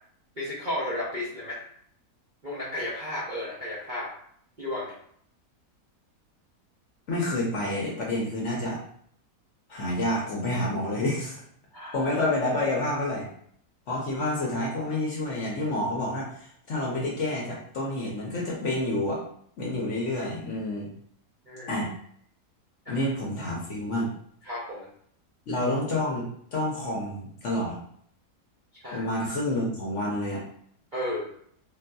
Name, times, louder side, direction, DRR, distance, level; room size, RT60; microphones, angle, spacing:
voice 1, 0.4-1.6 2.4-4.1 4.6-4.9 11.7-12.0 21.5-21.7 22.8-23.0 24.4-24.9 28.7-29.0 30.9-31.3, left 1 dB, 50° right, -8 dB, 0.6 m, -33 dB
voice 2, 7.1-8.8 9.7-11.4 11.8-13.3 13.9-19.2 19.6-20.9 21.7-21.9 22.9-24.1 25.5-27.8 28.9-30.4, left 1 dB, 60° left, -3 dB, 0.9 m, -29 dB
3.8 x 2.6 x 2.2 m, 0.66 s
omnidirectional pair, 1.7 m